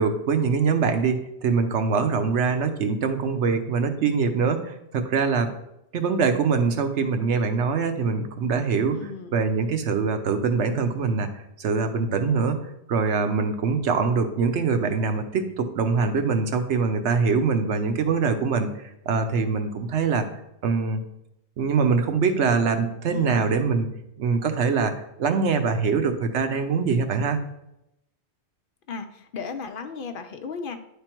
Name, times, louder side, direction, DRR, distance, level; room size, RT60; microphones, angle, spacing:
voice 1, 0.0-5.5 5.9-9.0 9.3-12.6 12.9-20.3 20.6-21.0 21.6-23.9 24.2-24.9 25.2-27.4, right 5 dB, 90° right, 7 dB, 1.1 m, -23 dB
voice 2, 8.9-9.5 23.1-23.5 28.9-30.8, left 5 dB, 60° left, 8 dB, 0.6 m, -35 dB
9.6 x 3.6 x 4.4 m, 0.83 s
omnidirectional pair, 1.1 m